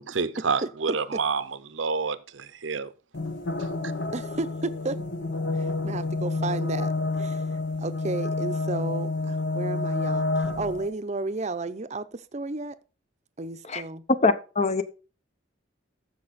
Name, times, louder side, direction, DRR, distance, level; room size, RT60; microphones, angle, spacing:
voice 1, 0.0-2.9 3.6-3.7, right 5 dB, 80° right, 0.8 m, -29 dB
sound 1, 3.1-10.9, left 3 dB, 65° left, 1.2 m, -29 dB
voice 2, 4.1-5.0 5.5-6.9 7.2-7.4 7.8-12.8 13.4-14.0, right 3 dB, 35° right, 0.7 m, -32 dB
voice 3, 14.2-14.8, left 3 dB, 35° left, 0.7 m, -23 dB
14.5 x 5.4 x 4.2 m
head